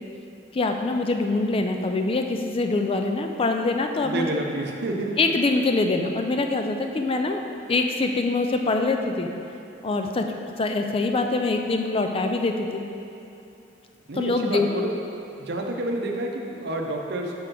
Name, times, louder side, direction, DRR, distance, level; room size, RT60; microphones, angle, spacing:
voice 1, 0.5-4.3 5.2-7.4 7.7-9.3 9.8-12.8 14.1-14.7, left 3 dB, 30° left, 5 dB, 0.4 m, -24 dB
voice 2, 4.0-5.1 14.1-14.9 15.4-17.4, right 2 dB, 60° right, 1 dB, 0.7 m, -29 dB
5.2 x 4.8 x 5.9 m, 2.8 s
head